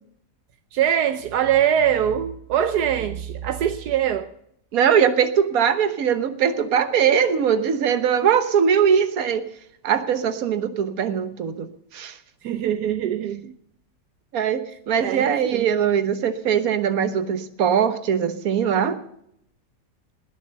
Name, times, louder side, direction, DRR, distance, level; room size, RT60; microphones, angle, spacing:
voice 1, 0.7-4.3 12.4-13.5 15.0-15.7, right 9 dB, 80° right, 1.3 m, -23 dB
voice 2, 4.7-9.5 9.8-11.7 11.9-12.2 14.3-14.6 14.9-19.0, right 8 dB, 65° right, 1.5 m, -21 dB
20.0 x 6.9 x 6.7 m
omnidirectional pair, 1.7 m